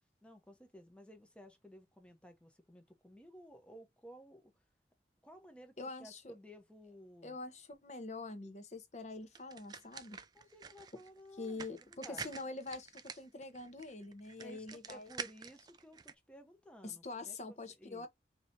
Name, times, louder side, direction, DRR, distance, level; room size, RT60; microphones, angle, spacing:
voice 1, 0.2-4.5 5.2-7.4 10.3-12.3 14.4-18.1, equal, 5° left, 0.8 m, -56 dB
voice 2, 5.8-6.2 7.2-10.2 11.4-15.1 16.8-18.1, left 3 dB, 40° left, 0.9 m, -45 dB
sound 1, 9.3-16.1, right 5 dB, 20° right, 0.3 m, -48 dB
4.8 x 2.8 x 2.6 m
head